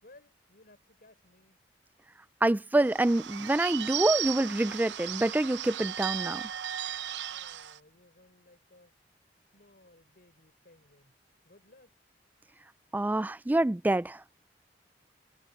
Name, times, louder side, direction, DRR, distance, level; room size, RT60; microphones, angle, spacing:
voice 1, 0.0-1.6 7.3-8.9 9.5-11.2 11.4-11.9, left 2 dB, 55° left, 5.4 m, -60 dB
voice 2, 2.4-6.4 12.9-14.2, right 1 dB, 10° right, 0.3 m, -26 dB
Bird / Bell, 2.8-7.8, right 11 dB, 75° right, 0.7 m, -35 dB
head